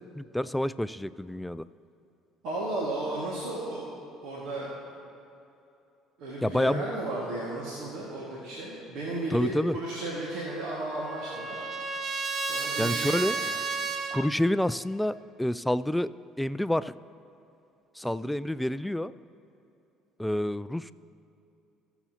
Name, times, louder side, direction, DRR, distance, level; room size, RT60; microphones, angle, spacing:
voice 1, 0.0-1.7 6.4-6.8 9.3-9.8 12.8-13.4 14.1-16.9 18.0-19.1 20.2-20.9, left 1 dB, 5° left, 16 dB, 0.3 m, -28 dB
voice 2, 2.4-3.9 4.2-4.7 6.2-12.0 12.4-13.5, right 2 dB, 70° right, -5 dB, 1.9 m, -34 dB
Trumpet, 10.4-14.3, right 4 dB, 45° right, 0.8 m, -32 dB
19.0 x 7.1 x 2.9 m, 2.7 s
hypercardioid pair, 60°, 0 cm